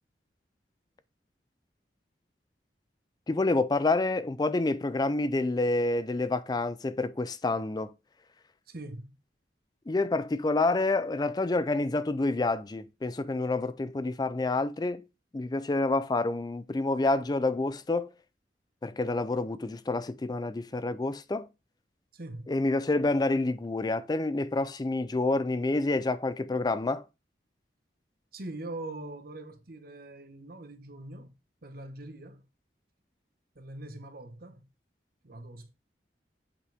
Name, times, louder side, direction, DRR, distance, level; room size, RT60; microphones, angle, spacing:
voice 1, 3.3-7.9 9.9-15.1 15.3-18.1 18.8-21.5 22.5-27.0, left 2 dB, 25° left, 0.4 m, -28 dB
voice 2, 8.7-9.2 22.1-22.5 28.3-31.4 31.6-32.5 33.5-34.7 35.2-35.7, right 2 dB, 55° right, 1.2 m, -42 dB
8.3 x 6.0 x 3.5 m
head